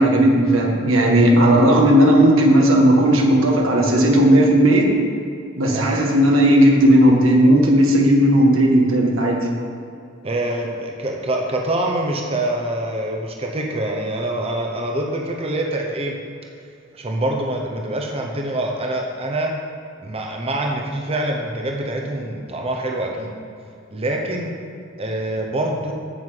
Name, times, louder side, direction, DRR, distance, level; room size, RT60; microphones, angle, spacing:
voice 1, 0.0-4.9 5.6-9.4, right 1 dB, 90° right, 0 dB, 1.7 m, -15 dB
voice 2, 10.2-16.2 16.9-19.5 20.0-23.3 23.9-24.5 25.0-25.9, right 1 dB, 30° right, 1 dB, 0.9 m, -25 dB
7.9 x 5.7 x 7.6 m, 2.5 s
head